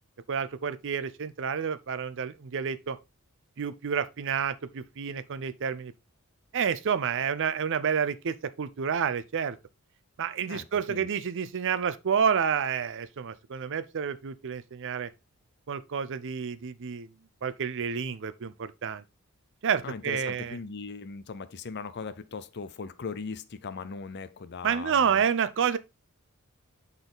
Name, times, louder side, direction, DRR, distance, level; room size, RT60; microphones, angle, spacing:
voice 1, 0.3-3.0 3.6-5.9 6.5-9.6 10.2-15.1 15.7-17.1 17.4-19.0 19.6-20.6 24.6-25.8, right 7 dB, 60° right, 0.5 m, -29 dB
voice 2, 10.5-11.1 19.8-25.3, left 5 dB, 50° left, 0.6 m, -39 dB
6.9 x 4.1 x 3.9 m
head